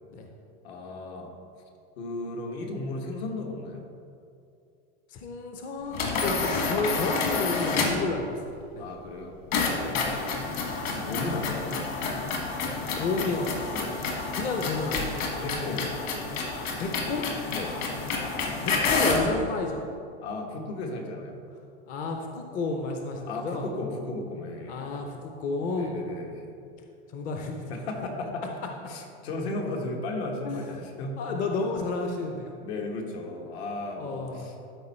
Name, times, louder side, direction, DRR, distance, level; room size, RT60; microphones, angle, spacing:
voice 1, 0.6-1.3 2.0-3.9 8.8-9.3 10.1-11.8 13.7-14.0 15.4-15.9 17.5-17.8 20.2-21.4 23.2-25.1 25.7-26.4 27.7-28.5 28.9-31.2 32.5-34.5, left 2 dB, 70° left, 1 dB, 1.6 m, -35 dB
voice 2, 5.1-8.9 9.7-10.0 13.0-13.5 14.3-15.3 15.6-15.8 16.8-17.3 18.6-19.8 21.9-23.7 24.7-26.0 27.1-27.6 30.4-30.7 31.2-32.5 34.0-34.4, left 3 dB, 25° left, 3 dB, 0.5 m, -31 dB
sound 1, 5.9-8.1 9.5-19.3, left 4 dB, 45° left, 1.6 m, -29 dB
12.5 x 4.5 x 4.3 m, 2.5 s
supercardioid pair, 155°, 33 cm